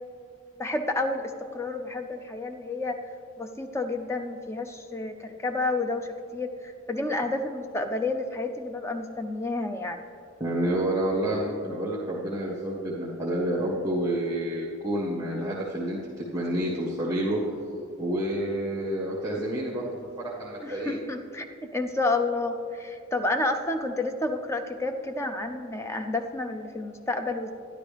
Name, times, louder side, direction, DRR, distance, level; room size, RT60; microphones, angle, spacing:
voice 1, 0.6-3.0 3.4-10.0 20.6-21.5 21.7-27.5, left 2 dB, 15° left, 6 dB, 0.5 m, -30 dB
voice 2, 10.4-17.4 18.0-21.0, right 1 dB, 15° right, -6 dB, 1.5 m, -29 dB
12.0 x 11.0 x 3.4 m, 2.4 s
head